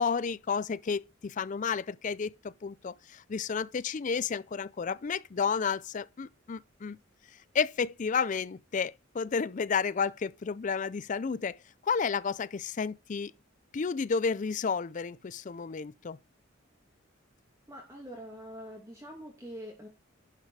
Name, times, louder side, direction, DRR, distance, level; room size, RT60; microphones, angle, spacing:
voice 1, 0.0-7.0 7.5-11.6 11.8-13.3 13.7-16.2, left 5 dB, 40° left, 0.4 m, -31 dB
voice 2, 17.7-19.9, equal, 15° right, 2.3 m, -44 dB
11.0 x 5.1 x 4.8 m
head